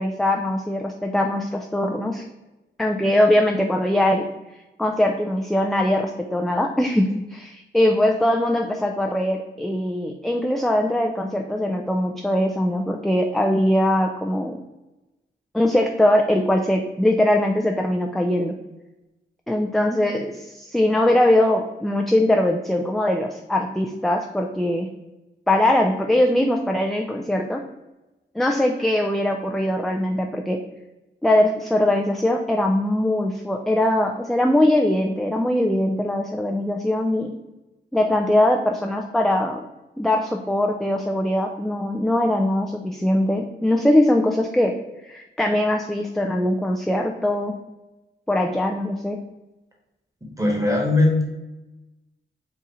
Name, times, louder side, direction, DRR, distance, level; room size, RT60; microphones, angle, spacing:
voice 1, 0.0-2.2 2.8-4.3 4.8-14.6 15.5-18.5 19.5-24.9 25.5-27.6 28.3-30.6 31.2-37.3 37.9-39.6 40.0-44.7 45.0-47.5 48.3-49.2, left 1 dB, ahead, 2 dB, 0.4 m, -21 dB
voice 2, 50.4-51.2, left 2 dB, 15° right, 0 dB, 1.4 m, -19 dB
4.0 x 2.4 x 4.1 m, 1.0 s
cardioid pair, 55°, 20 cm